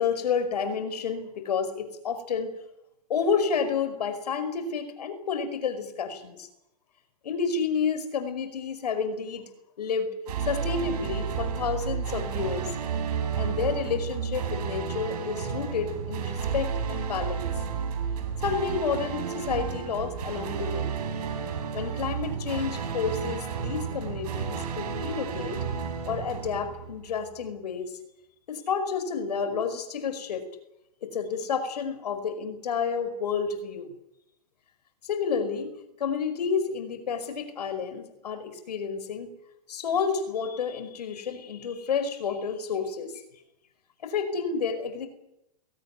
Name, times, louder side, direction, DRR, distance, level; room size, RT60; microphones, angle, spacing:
voice 1, 0.0-2.5 3.1-6.5 7.2-9.5 9.8-10.1 10.5-12.8 13.4-17.5 18.4-20.9 21.7-25.6 26.1-27.9 28.5-30.4 31.0-33.9 35.0-39.4 39.7-43.2 44.0-45.1, left 6 dB, 80° left, 9 dB, 5.3 m, -30 dB
sound 1, 10.3-27.3, right 7 dB, 75° right, 4.8 m, -32 dB
22.0 x 18.0 x 9.8 m, 0.84 s
hypercardioid pair, 110°, 20 cm